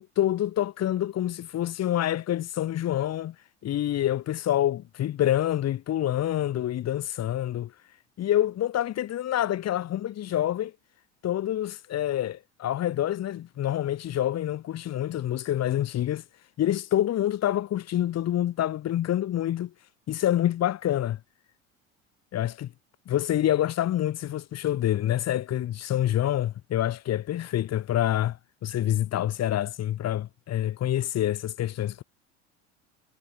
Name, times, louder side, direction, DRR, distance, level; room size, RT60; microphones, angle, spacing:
voice 1, 0.0-3.4 3.6-7.7 8.2-10.7 11.2-16.2 16.6-19.7 20.1-21.2 22.3-22.7 23.1-32.0, left 12 dB, 40° left, 7.0 m, -27 dB
figure-of-eight pair, 70°, 38 cm